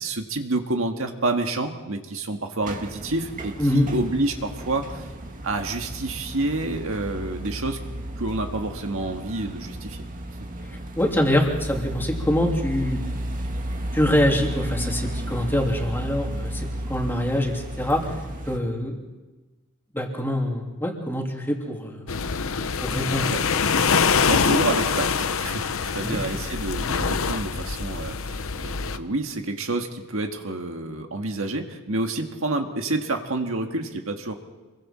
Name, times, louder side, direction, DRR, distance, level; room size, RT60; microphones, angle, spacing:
voice 1, 0.0-5.1 5.4-7.8 8.2-10.0 23.3-23.4 24.0-34.3, right 2 dB, 70° right, 4 dB, 1.8 m, -28 dB
sound 1, 2.6-18.6, right 1 dB, 40° right, 2.0 m, -33 dB
voice 2, 3.6-3.9 11.0-13.0 13.9-18.1 18.5-19.0 19.9-22.0 22.8-23.3 26.0-26.2, left 1 dB, 10° left, 0 dB, 2.8 m, -24 dB
sound 2, 22.1-29.0, left 5 dB, 70° left, 0.8 m, -24 dB
26.5 x 23.0 x 4.4 m, 1.2 s
head